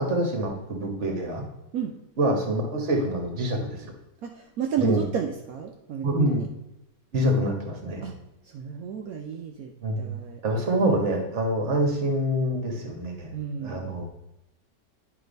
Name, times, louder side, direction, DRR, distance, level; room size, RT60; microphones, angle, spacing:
voice 1, 0.0-1.4 2.2-3.9 4.8-5.0 6.0-6.4 7.1-8.0 9.8-10.1 10.4-13.3 13.6-14.1, right 1 dB, 45° right, 3 dB, 1.4 m, -26 dB
voice 2, 4.2-6.5 8.0-8.2 8.4-10.7 13.3-13.9, right 7 dB, 65° right, 3 dB, 0.9 m, -32 dB
9.8 x 3.4 x 5.1 m, 0.87 s
omnidirectional pair, 1.9 m